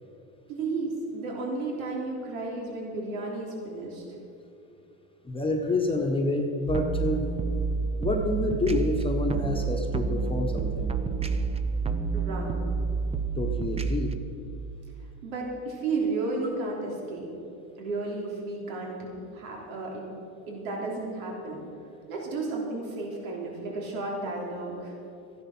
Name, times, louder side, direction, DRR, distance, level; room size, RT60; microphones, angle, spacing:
voice 1, 0.5-4.0 12.1-12.6 15.2-17.3 17.8-20.1 20.5-21.6 22.1-24.9, right 3 dB, 85° right, -1 dB, 3.6 m, -33 dB
voice 2, 5.2-7.3 8.0-10.9 13.4-14.2, left 2 dB, 15° left, 1 dB, 1.2 m, -28 dB
sound 1, 6.7-14.2, right 5 dB, 15° right, 0.6 m, -29 dB
14.0 x 11.0 x 6.2 m, 2.8 s
supercardioid pair, 115°, 40 cm